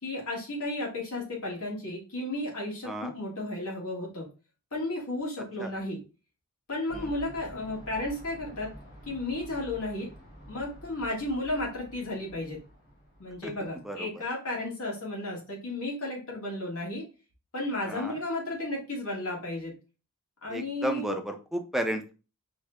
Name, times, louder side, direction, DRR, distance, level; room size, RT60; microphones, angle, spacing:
voice 1, 0.0-4.3 4.7-6.0 6.7-8.7 9.1-10.1 10.5-12.6 13.2-17.0 17.5-19.7 20.4-21.1, left 2 dB, 70° left, -3 dB, 2.0 m, -33 dB
sound 1, 6.9-13.7, equal, 55° left, 2.4 m, -48 dB
voice 2, 13.8-14.2 17.8-18.2 20.5-22.1, equal, ahead, 4 dB, 0.5 m, -33 dB
4.7 x 2.7 x 3.4 m, 0.33 s
head